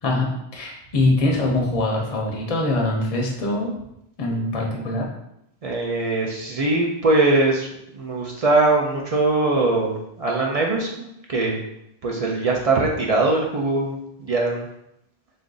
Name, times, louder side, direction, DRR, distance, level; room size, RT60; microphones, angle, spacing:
voice 1, 0.0-3.7 4.2-5.1, left 2 dB, 40° left, -1 dB, 0.7 m, -23 dB
voice 2, 5.6-11.6 12.0-14.7, right 2 dB, 45° right, -1 dB, 0.5 m, -21 dB
3.5 x 2.6 x 3.8 m, 0.81 s
omnidirectional pair, 1.0 m